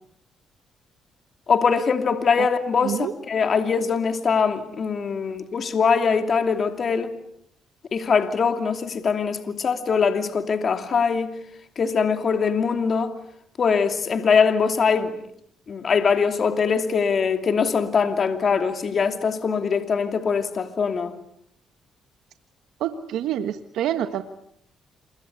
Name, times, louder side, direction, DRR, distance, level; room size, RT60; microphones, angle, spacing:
voice 1, 1.5-7.1 7.9-11.3 11.8-13.1 13.6-15.1 15.7-21.2, left 5 dB, 45° left, 2.8 m, -22 dB
voice 2, 2.8-3.1 22.8-24.2, right 11 dB, 85° right, 1.4 m, -27 dB
28.0 x 23.0 x 8.3 m
cardioid pair, 90°, 0 cm